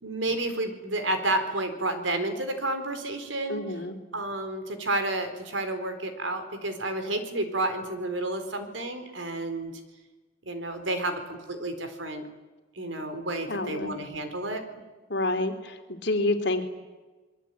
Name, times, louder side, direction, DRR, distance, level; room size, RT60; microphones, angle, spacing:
voice 1, 0.0-3.6 4.1-9.7 10.5-12.2 12.8-14.6, right 2 dB, 75° right, 8 dB, 4.3 m, -30 dB
voice 2, 3.5-4.0 13.5-13.9 15.1-16.6, left 2 dB, 60° left, 6 dB, 3.2 m, -28 dB
27.0 x 22.5 x 9.4 m, 1.2 s
head